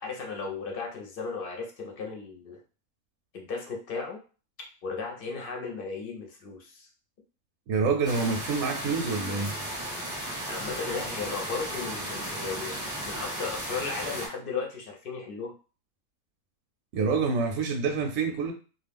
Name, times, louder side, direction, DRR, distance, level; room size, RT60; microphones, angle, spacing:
voice 1, 0.0-2.6 3.3-4.2 4.8-6.9 10.4-15.5, left 4 dB, 50° left, 1 dB, 0.7 m, -35 dB
voice 2, 7.7-9.5 16.9-18.5, right 4 dB, 70° right, 3 dB, 0.9 m, -27 dB
sound 1, 8.0-14.3, right 1 dB, 5° right, 0.7 m, -35 dB
2.4 x 2.3 x 3.4 m, 0.36 s
omnidirectional pair, 1.6 m